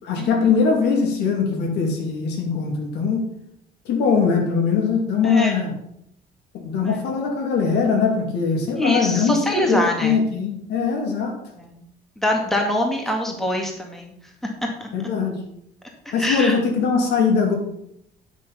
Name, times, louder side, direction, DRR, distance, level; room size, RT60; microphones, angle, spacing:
voice 1, 0.0-3.3 3.8-5.7 6.6-11.4 13.3-13.4 14.9-15.4 16.1-17.5, left 5 dB, 80° left, 1 dB, 2.6 m, -21 dB
voice 2, 8.8-10.2 11.6-11.8 12.2-14.1 14.8-14.9 16.1-16.6, left 1 dB, ahead, 1 dB, 2.0 m, -24 dB
11.0 x 6.4 x 5.7 m, 0.74 s
cardioid pair, 110°, 17 cm